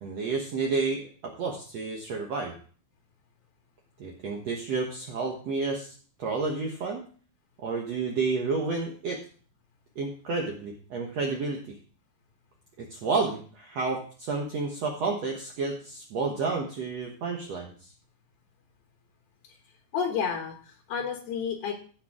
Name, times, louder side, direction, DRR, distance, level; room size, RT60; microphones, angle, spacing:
voice 1, 0.0-2.5 4.0-7.0 7.6-9.2 10.0-11.8 12.8-17.7, right 4 dB, 65° right, 0 dB, 1.8 m, -30 dB
voice 2, 19.9-21.7, left 7 dB, 75° left, 3 dB, 3.0 m, -30 dB
16.0 x 5.9 x 3.6 m, 0.42 s
omnidirectional pair, 4.4 m